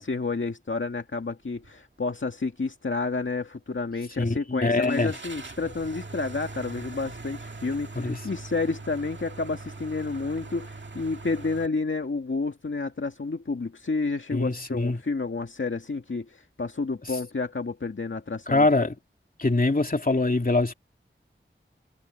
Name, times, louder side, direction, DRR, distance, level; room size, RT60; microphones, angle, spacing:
voice 1, 0.0-18.7, left 3 dB, 70° left, 2.0 m, -30 dB
sound 1, 1.5-1.8 2.2-2.3 4.8-11.7, right 3 dB, 60° right, 2.0 m, -41 dB
voice 2, 4.2-5.1 8.0-8.2 14.3-15.0 18.5-19.0 19.4-20.7, left 2 dB, 45° left, 2.7 m, -23 dB
wide cardioid pair, 65°, 21 cm